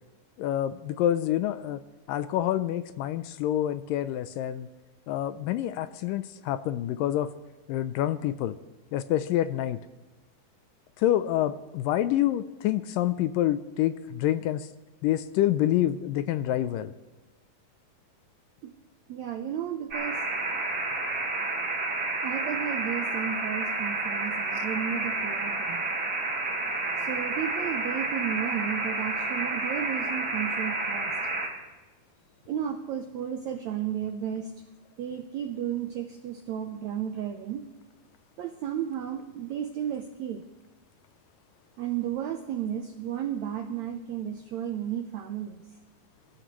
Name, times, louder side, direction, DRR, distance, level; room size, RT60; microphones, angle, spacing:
voice 1, 0.4-1.8 2.1-4.7 5.1-7.3 7.7-8.6 8.9-9.8 11.0-14.7 15.0-16.9, left 12 dB, 80° left, 12 dB, 2.1 m, -27 dB
voice 2, 19.1-20.2 22.2-25.9 27.0-31.1 32.5-34.5 35.0-37.7 38.4-40.4 41.8-45.6, right 9 dB, 80° right, 6 dB, 1.6 m, -33 dB
sound 1, 19.9-31.5, right 3 dB, 30° right, 3.3 m, -30 dB
24.0 x 14.5 x 3.1 m, 1.2 s
omnidirectional pair, 4.2 m